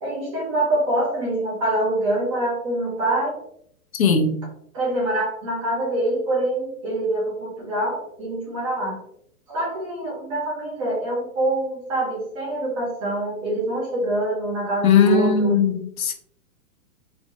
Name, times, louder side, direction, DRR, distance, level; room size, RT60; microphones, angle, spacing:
voice 1, 0.0-3.4 4.7-9.0 9.5-15.6, right 1 dB, 25° right, -3 dB, 1.2 m, -25 dB
voice 2, 3.9-4.3 14.8-16.1, left 5 dB, 75° left, 6 dB, 0.9 m, -18 dB
4.3 x 3.1 x 2.9 m, 0.67 s
hypercardioid pair, 175°, 42 cm